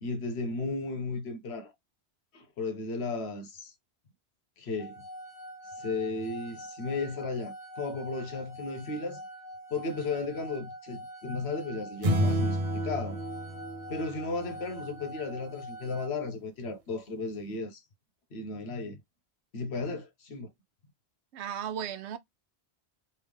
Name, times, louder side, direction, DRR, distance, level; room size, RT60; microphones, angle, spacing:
voice 1, 0.0-1.7 2.3-3.7 4.6-5.0 5.8-9.2 9.7-13.2 13.9-17.8 18.3-19.0 19.5-20.5, left 3 dB, 75° left, 1.2 m, -35 dB
sound 1, 4.8-16.1, equal, 25° left, 0.9 m, -45 dB
sound 2, 12.0-14.7, right 1 dB, 40° right, 0.7 m, -30 dB
voice 2, 21.3-22.2, right 8 dB, 85° right, 0.9 m, -35 dB
3.4 x 2.8 x 3.4 m
omnidirectional pair, 1.1 m